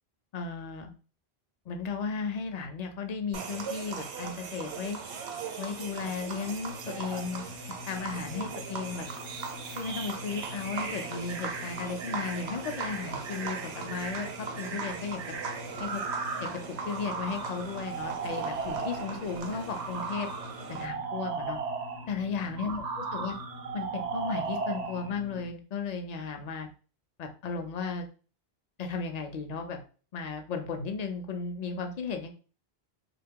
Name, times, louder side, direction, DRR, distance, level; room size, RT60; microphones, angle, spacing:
voice 1, 0.3-0.9 1.7-5.0 5.6-9.1 9.8-15.2 15.8-16.0 16.4-20.3 20.7-21.6 22.1-22.8 23.1-23.4 23.7-26.7 27.2-28.1 28.8-29.8 30.1-32.3, left 5 dB, 55° left, 5 dB, 0.5 m, -35 dB
sound 1, 3.3-20.9, right 5 dB, 90° right, 0.9 m, -40 dB
sound 2, 6.7-25.5, left 3 dB, 80° left, 0.8 m, -46 dB
sound 3, 9.1-19.2 19.7-22.1 22.6-25.1, right 5 dB, 55° right, 0.5 m, -37 dB
2.7 x 2.3 x 3.5 m, 0.37 s
omnidirectional pair, 1.1 m